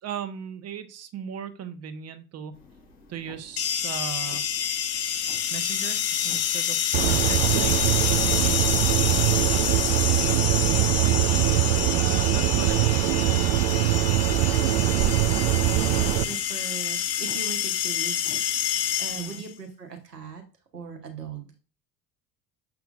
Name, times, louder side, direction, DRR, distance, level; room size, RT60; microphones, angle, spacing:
voice 1, 0.0-2.6 3.1-4.4 5.5-8.4 10.3-10.7 11.0-13.1 19.1-19.4, right 8 dB, 35° right, 10 dB, 1.0 m, -38 dB
sound 1, 2.5-19.3, left 3 dB, 65° left, 4.0 m, -51 dB
sound 2, 3.6-19.5, left 9 dB, 30° left, 0.9 m, -27 dB
sound 3, 6.9-16.2, right 15 dB, 50° right, 0.5 m, -22 dB
voice 2, 9.9-10.2 10.6-11.1 14.6-18.4 19.0-20.4 20.7-21.5, right 6 dB, 85° right, 3 dB, 1.2 m, -39 dB
7.3 x 5.8 x 2.5 m, 0.34 s
figure-of-eight pair, 65°, 47 cm